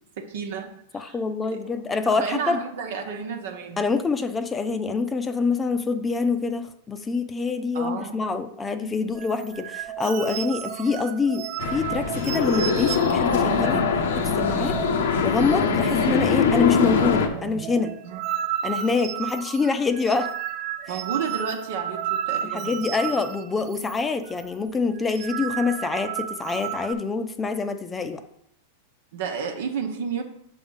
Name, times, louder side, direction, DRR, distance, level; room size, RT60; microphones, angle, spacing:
voice 1, 0.2-1.2 1.5-1.7 2.1-3.9 7.7-8.2 14.7-14.8 18.0-18.5 20.9-23.0 29.1-30.2, right 6 dB, 70° right, 5 dB, 1.1 m, -32 dB
voice 2, 0.9-2.6 3.8-13.9 14.2-14.8 15.2-17.9 18.6-20.3 22.4-28.2, left 4 dB, 20° left, 8 dB, 0.6 m, -26 dB
sound 1, 9.1-15.1 15.4-15.5 15.8-16.4 16.7-24.0 24.3-24.5 24.9-26.9, right 11 dB, 45° right, 0.4 m, -33 dB
sound 2, 11.6-17.3, left 5 dB, 75° left, 0.9 m, -22 dB
6.8 x 3.6 x 5.5 m, 0.73 s
hypercardioid pair, 105°, 0 cm